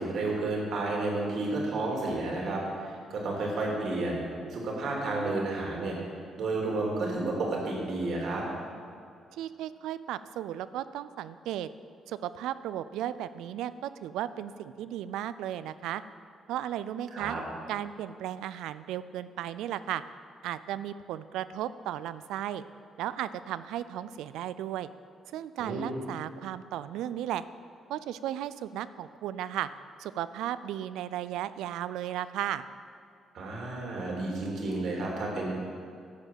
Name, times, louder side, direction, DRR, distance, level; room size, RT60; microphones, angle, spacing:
voice 1, 0.0-4.2 4.5-6.0 6.4-8.4 17.1-17.4 25.6-26.0 33.3-35.5, right 2 dB, 65° right, -2 dB, 2.6 m, -31 dB
voice 2, 9.3-11.7 12.1-16.0 16.5-17.4 17.7-20.0 20.4-22.6 23.0-24.9 25.3-27.4 27.9-29.7 30.0-32.6, right 11 dB, 90° right, 14 dB, 0.3 m, -35 dB
11.0 x 5.2 x 7.5 m, 2.4 s
cardioid pair, 90°, 0 cm